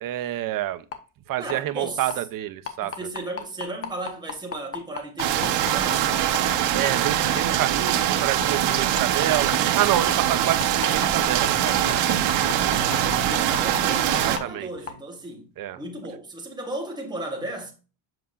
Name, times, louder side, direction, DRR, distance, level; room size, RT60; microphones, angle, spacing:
voice 1, 0.0-0.8 1.3-3.0 6.7-12.0 14.2-14.7 15.6-15.8, right 13 dB, 50° right, 0.7 m, -28 dB
sound 1, 0.9-1.0 1.5-1.6 2.1-2.2 2.6-6.4 6.8-7.0 7.4-7.5 7.9-8.0 8.4-8.5 9.0-9.1 9.5-9.6 10.1-10.2 10.6-14.4 14.9-15.0, left 7 dB, 30° left, 0.9 m, -32 dB
voice 2, 1.4-2.1 2.8-6.2 12.7-17.7, right 2 dB, 10° right, 1.4 m, -35 dB
sound 2, 5.2-14.4, right 11 dB, 70° right, 1.1 m, -23 dB
7.7 x 5.6 x 2.4 m
cardioid pair, 170°, 43 cm